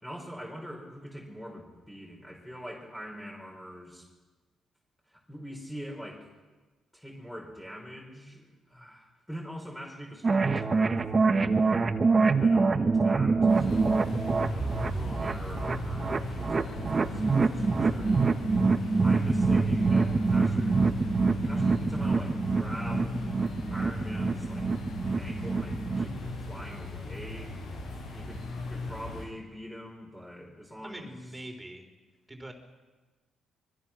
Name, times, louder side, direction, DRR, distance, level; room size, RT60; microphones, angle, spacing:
voice 1, 0.0-4.1 5.1-6.3 6.9-11.1 11.6-11.9 12.2-14.0 14.5-18.3 19.0-20.8 21.2-23.2 23.7-24.7 25.2-27.6 28.1-31.2, equal, 5° left, -1 dB, 5.2 m, -43 dB
sound 1, 10.2-26.2, right 4 dB, 35° right, 1.4 m, -26 dB
sound 2, 13.5-29.3, left 2 dB, 75° left, 7.8 m, -38 dB
voice 2, 30.8-31.9 32.3-32.5, right 1 dB, 20° right, 6 dB, 3.9 m, -43 dB
24.5 x 22.0 x 6.2 m, 1.2 s
cardioid pair, 90°, 0 cm